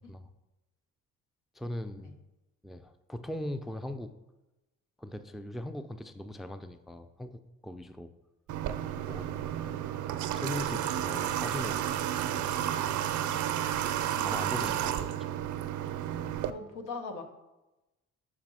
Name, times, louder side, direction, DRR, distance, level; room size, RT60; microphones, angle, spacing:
voice 1, 1.5-2.1 2.6-4.1 5.0-8.1 9.0-9.7 10.3-13.4 14.0-15.2, left 1 dB, ahead, 10 dB, 0.3 m, -40 dB
Water / Water tap faucet, 8.5-16.5, right 11 dB, 75° right, 0.5 m, -32 dB
voice 2, 14.2-14.8 16.4-17.2, left 4 dB, 85° left, 5 dB, 1.0 m, -42 dB
5.1 x 4.9 x 6.1 m, 1.0 s
cardioid pair, 90°, 30 cm